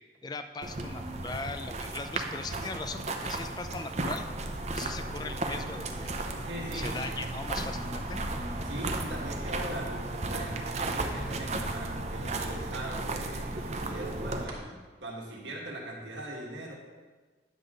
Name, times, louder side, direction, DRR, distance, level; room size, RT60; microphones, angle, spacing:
voice 1, 0.2-4.3 4.7-6.2 6.7-8.2, left 3 dB, 20° left, 9 dB, 0.4 m, -39 dB
sound 1, 0.6-14.4, right 2 dB, 35° right, 0.6 m, -35 dB
sound 2, 4.1-14.6, equal, 55° right, 1.6 m, -43 dB
voice 2, 6.4-7.1 8.6-16.7, right 1 dB, 85° right, -2 dB, 1.7 m, -40 dB
9.9 x 6.7 x 3.8 m, 1.3 s
head